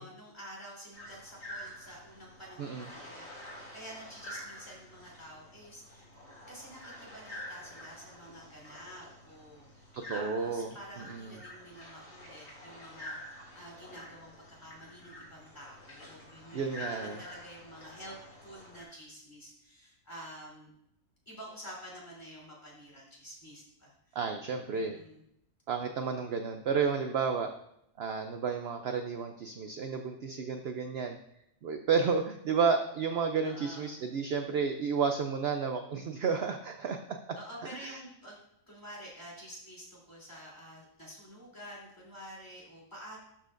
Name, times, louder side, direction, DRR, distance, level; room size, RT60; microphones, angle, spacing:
voice 1, 0.0-6.1 6.5-18.2 18.4-20.7 21.2-24.2 24.7-25.2 33.4-34.0 37.4-38.4 38.7-43.2, equal, 15° left, -5 dB, 3.3 m, -49 dB
sound 1, 0.9-18.8, left 1 dB, 70° left, 3.4 m, -48 dB
voice 2, 2.6-2.9 9.9-11.4 16.5-17.2 24.1-25.0 25.7-27.5 28.0-31.2 31.6-37.4 37.7-38.0, right 5 dB, 60° right, 6 dB, 0.8 m, -32 dB
12.5 x 7.6 x 2.6 m, 0.77 s
omnidirectional pair, 1.4 m